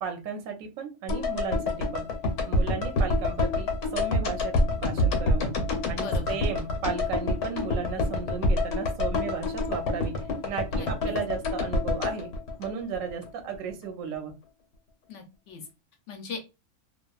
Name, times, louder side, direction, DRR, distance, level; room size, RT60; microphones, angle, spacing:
voice 1, 0.0-2.1 2.5-5.5 5.9-12.3 12.6-14.3, right 6 dB, 70° right, 4 dB, 0.9 m, -35 dB
sound 1, 1.1-13.3 13.5-13.6, left 2 dB, 90° left, 1.2 m, -27 dB
voice 2, 6.0-6.4 10.8-11.1 15.1-15.6 16.1-16.4, left 4 dB, 60° left, 4 dB, 0.9 m, -39 dB
2.9 x 2.2 x 2.3 m, 0.28 s
omnidirectional pair, 1.6 m